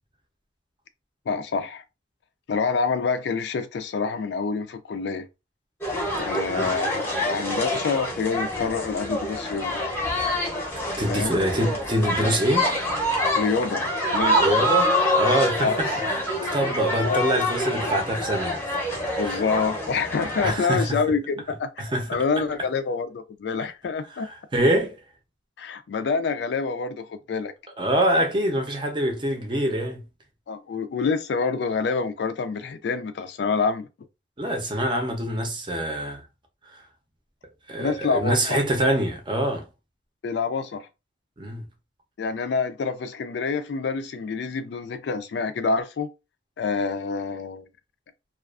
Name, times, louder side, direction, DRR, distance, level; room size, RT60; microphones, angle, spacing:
voice 1, 1.3-1.8 2.5-5.3 6.1-9.8 11.1-11.4 13.4-14.5 15.6-15.8 17.0-17.2 19.2-21.7 22.1-24.3 25.6-27.5 30.5-33.9 37.8-38.6 40.2-40.9 42.2-46.1 46.6-47.7, left 5 dB, 65° left, 0.3 m, -27 dB
SO-boce megaphone, 5.8-20.6, left 1 dB, 10° left, 0.7 m, -26 dB
voice 2, 11.0-12.7 14.4-15.9 16.4-18.6 19.2-19.4 20.4-21.0 21.8-22.1 24.2-24.9 27.8-30.0 34.4-36.2 36.6-36.8 37.7-39.7 41.4-41.7, right 1 dB, 25° right, 0.6 m, -25 dB
2.4 x 2.3 x 2.4 m
head